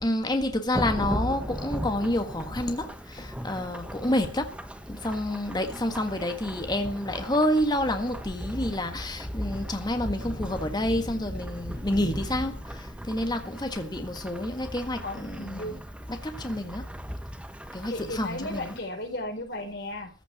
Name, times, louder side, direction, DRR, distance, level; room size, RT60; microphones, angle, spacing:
voice 1, 0.0-4.5 4.9-15.8 16.1-16.8 17.7-18.7, left 1 dB, 25° left, 1.6 m, -29 dB
Thunderstorm / Rain, 0.7-18.8, equal, 5° right, 1.2 m, -37 dB
voice 2, 15.0-15.7 17.9-20.1, left 1 dB, 65° left, 4.8 m, -35 dB
14.5 x 6.1 x 9.9 m
head